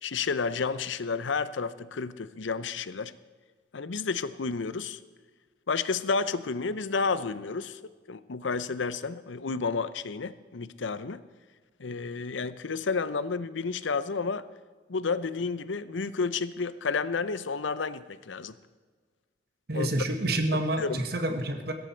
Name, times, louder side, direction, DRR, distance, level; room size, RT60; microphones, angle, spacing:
voice 1, 0.0-3.1 3.7-5.0 5.7-11.2 11.8-14.5 14.9-18.5 19.7-19.9 20.8-21.0, left 4 dB, 90° left, 15 dB, 0.7 m, -31 dB
voice 2, 19.7-21.7, right 1 dB, 55° right, 6 dB, 1.6 m, -28 dB
16.5 x 14.0 x 4.5 m, 1.5 s
head